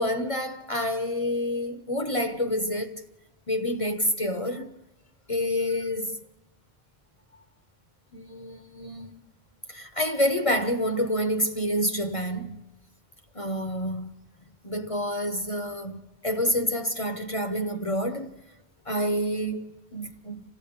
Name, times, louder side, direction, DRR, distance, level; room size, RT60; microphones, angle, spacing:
voice 1, 0.0-3.0 3.5-4.7 5.3-6.2 8.1-9.3 9.7-12.6 13.3-14.1 14.6-18.3 18.9-20.4, equal, 35° left, 1.0 m, -28 dB
27.0 x 15.5 x 8.7 m
omnidirectional pair, 1.1 m